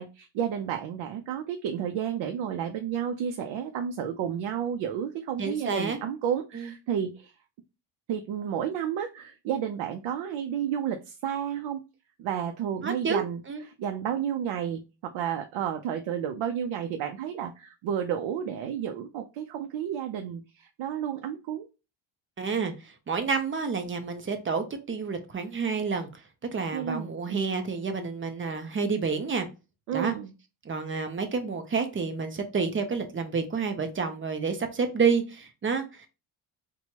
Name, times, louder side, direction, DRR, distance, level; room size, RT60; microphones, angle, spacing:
voice 1, 0.0-7.3 8.1-11.8 12.2-13.4 13.8-21.7 26.7-27.5 29.9-30.3, right 9 dB, 70° right, 5 dB, 0.6 m, -31 dB
voice 2, 5.4-6.0 6.5-6.7 12.8-13.6 22.4-26.1 26.5-29.5 29.9-30.1 30.7-36.1, right 5 dB, 25° right, 7 dB, 0.6 m, -29 dB
4.4 x 2.3 x 2.8 m, 0.29 s
cardioid pair, 125°, 48 cm